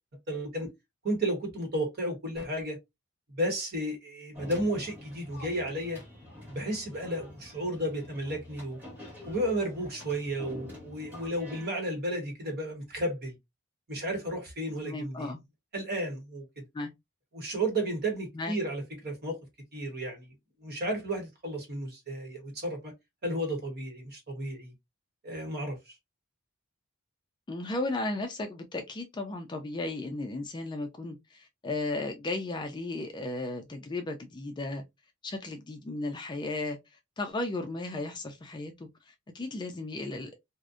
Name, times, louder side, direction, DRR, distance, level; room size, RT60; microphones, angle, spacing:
voice 1, 0.3-0.7 1.0-2.8 3.3-6.0 6.5-8.8 9.2-13.3 13.9-15.3 15.7-16.4 17.3-19.4 19.7-20.3 20.6-22.9 23.2-24.7 25.2-25.9, right 1 dB, 45° right, 0.9 m, -33 dB
sound 1, 4.3-11.7, left 1 dB, 10° right, 1.0 m, -47 dB
voice 2, 14.8-15.4 16.7-16.9 18.3-18.6 27.5-34.8 35.2-36.8 37.2-40.3, left 2 dB, 20° left, 0.3 m, -35 dB
2.6 x 2.1 x 2.3 m
head